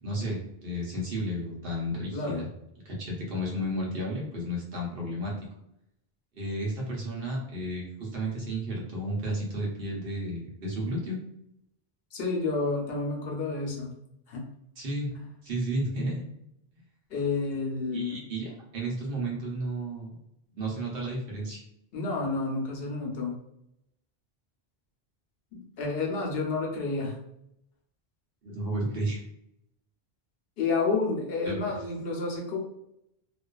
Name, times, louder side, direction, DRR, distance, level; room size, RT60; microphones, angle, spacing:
voice 1, 0.0-2.5 2.8-5.3 6.3-11.2 14.8-15.1 15.4-16.2 17.9-20.1 20.5-21.6 28.4-29.2 31.4-31.6, right 1 dB, 65° right, -3 dB, 1.0 m, -32 dB
voice 2, 2.1-2.4 12.1-13.9 14.3-14.4 17.1-18.2 21.9-23.3 25.5-27.2 30.6-32.6, left 3 dB, 75° left, -1 dB, 0.9 m, -30 dB
2.4 x 2.3 x 2.3 m, 0.79 s
omnidirectional pair, 1.0 m